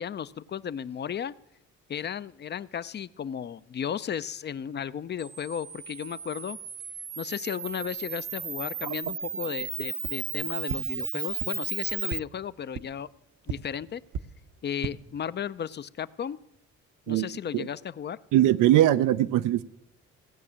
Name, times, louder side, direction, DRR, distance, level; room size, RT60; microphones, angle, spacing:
voice 1, 0.0-1.3 1.9-6.6 7.2-13.1 13.5-14.0 14.6-16.4 17.1-18.2, left 8 dB, 35° left, 18 dB, 0.5 m, -34 dB
Camera, 5.2-12.2, right 6 dB, 25° right, 0.5 m, -35 dB
sound 1, 10.0-10.1 10.7-10.8 11.4-11.5 12.1-12.2 12.7-12.8 13.4-13.5 14.1-14.2 14.7-14.9, right 7 dB, 70° right, 0.8 m, -33 dB
voice 2, 18.3-19.6, right 13 dB, 90° right, 12 dB, 0.5 m, -21 dB
16.5 x 6.1 x 8.7 m, 0.81 s
cardioid pair, 90°, 30 cm